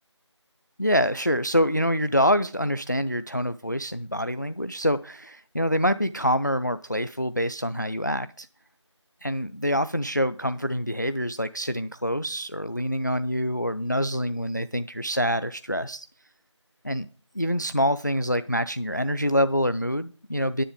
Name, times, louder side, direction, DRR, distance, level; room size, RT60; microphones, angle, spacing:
voice 1, 0.8-8.5 9.2-16.1 16.8-17.1 17.4-20.6, equal, 40° left, 0.4 m, -26 dB
10.0 x 7.5 x 5.1 m
figure-of-eight pair, 175°, 15 cm